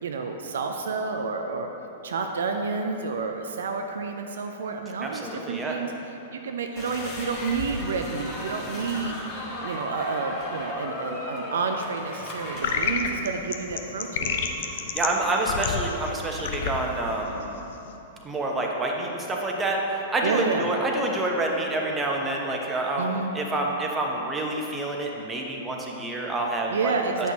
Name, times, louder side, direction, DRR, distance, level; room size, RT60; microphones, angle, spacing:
voice 1, 0.0-1.7 2.0-5.9 6.3-9.1 9.6-14.4 20.2-20.7 23.0-23.3 26.7-27.3, right 4 dB, 70° right, 4 dB, 0.4 m, -30 dB
voice 2, 5.0-5.8 14.7-17.4 18.2-27.3, right 2 dB, 15° right, 0 dB, 0.9 m, -28 dB
sound 1, 6.8-12.7, left 1 dB, 35° left, 1.5 m, -35 dB
sound 2, 12.6-18.0, left 5 dB, 60° left, 0.5 m, -30 dB
9.1 x 6.1 x 2.8 m, 3.0 s
figure-of-eight pair, 105°, 0 cm